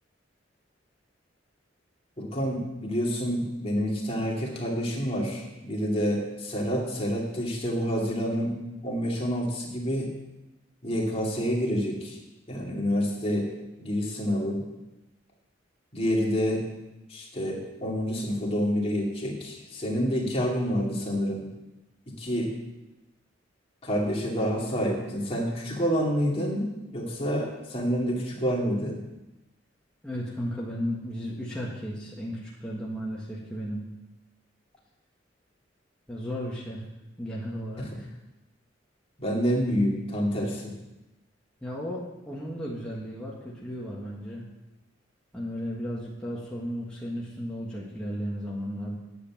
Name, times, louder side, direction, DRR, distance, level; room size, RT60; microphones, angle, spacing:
voice 1, 2.2-8.5 8.8-10.1 10.8-12.2 12.5-13.5 13.8-14.6 15.9-16.6 17.1-21.5 22.2-22.5 23.8-29.0 37.8-37.9 39.2-40.7, equal, 30° left, -2 dB, 2.5 m, -28 dB
voice 2, 30.0-33.9 36.1-36.8 37.2-38.1 41.6-44.4 45.3-49.0, equal, 5° left, -6 dB, 1.6 m, -34 dB
10.0 x 7.9 x 7.2 m, 1.0 s
head